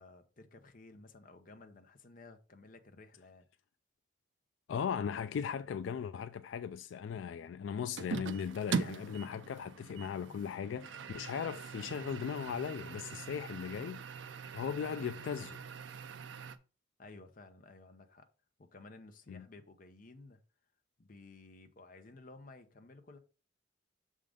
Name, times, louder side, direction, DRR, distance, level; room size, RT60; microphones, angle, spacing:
voice 1, 0.0-3.5 17.0-18.2 18.6-20.4 21.0-23.2, left 3 dB, 45° left, 0.8 m, -55 dB
voice 2, 4.7-14.0 14.5-15.6 19.3-19.5, left 7 dB, 80° left, 0.3 m, -38 dB
sound 1, 8.0-16.6, right 5 dB, 75° right, 0.5 m, -42 dB
6.5 x 3.7 x 5.0 m
head